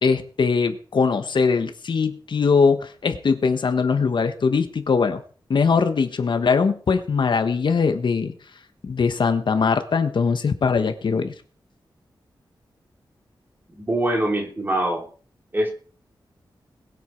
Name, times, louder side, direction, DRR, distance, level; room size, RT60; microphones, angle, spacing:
voice 1, 0.0-5.2 5.5-8.3 8.8-11.3, left 5 dB, 65° left, 8 dB, 1.4 m, -21 dB
voice 2, 13.7-15.1 15.5-15.7, right 1 dB, 25° right, 2 dB, 3.3 m, -23 dB
21.0 x 8.3 x 4.6 m, 0.43 s
wide cardioid pair, 140°, 9 cm